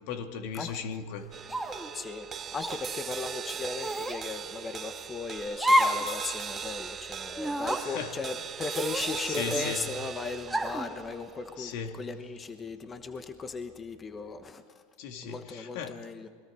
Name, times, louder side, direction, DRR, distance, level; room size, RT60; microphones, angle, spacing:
voice 1, 0.1-1.3 7.8-8.2 9.3-9.9 11.6-12.0 15.0-16.1, left 6 dB, 65° left, 6 dB, 2.0 m, -37 dB
sound 1, 1.3-13.8, right 7 dB, 30° right, 1.0 m, -40 dB
sound 2, 1.5-1.9 2.6-2.8 3.8-4.2 5.6-6.1 6.4-6.5 7.4-7.8 8.7-9.6 10.5-10.9, equal, 5° right, 1.9 m, -28 dB
voice 2, 1.9-14.6 15.2-16.3, left 4 dB, 25° left, 8 dB, 1.1 m, -37 dB
27.0 x 22.0 x 4.9 m, 2.1 s
supercardioid pair, 120°, 0 cm